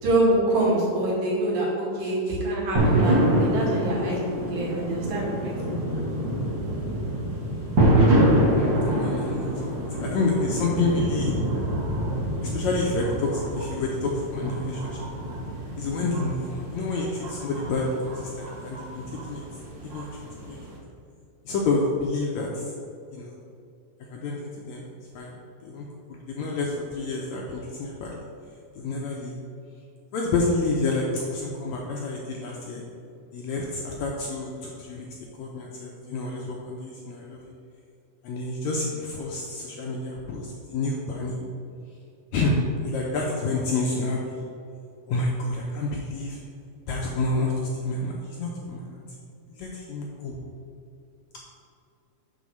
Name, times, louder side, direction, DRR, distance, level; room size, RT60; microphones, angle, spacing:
voice 1, 0.0-5.9, right 1 dB, 85° right, -4 dB, 3.5 m, -25 dB
voice 2, 2.0-2.4 8.8-9.7 10.0-11.3 12.4-15.0 15.8-19.4 19.9-20.1 20.5-20.6 21.4-22.6 23.1-23.3 24.1-24.8 25.1-25.3 25.6-28.1 28.7-29.4 30.1-32.8 33.3-35.1 35.4-37.4 38.2-41.4 42.3-42.6 42.8-44.4 45.1-46.4 46.9-49.0 49.5-50.4, left 3 dB, 75° left, -2 dB, 1.7 m, -29 dB
sound 1, 2.8-20.7, right 1 dB, 45° right, 1.6 m, -26 dB
6.9 x 3.9 x 6.3 m, 2.5 s
omnidirectional pair, 3.9 m